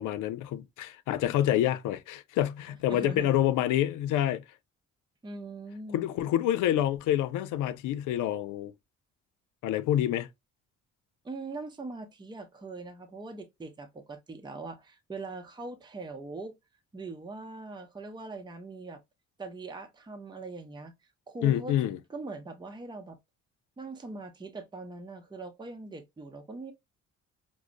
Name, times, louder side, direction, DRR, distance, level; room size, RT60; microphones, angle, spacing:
voice 1, 0.0-4.4 5.9-8.7 9.6-10.3 21.4-22.0, left 12 dB, 85° left, 0.5 m, -27 dB
voice 2, 2.9-3.3 5.2-6.0 11.2-16.5 16.9-19.0 19.4-20.9 21.3-21.7 22.1-23.2 23.8-26.7, right 3 dB, 15° right, 0.7 m, -41 dB
4.9 x 2.0 x 2.5 m
cardioid pair, 90°, 30 cm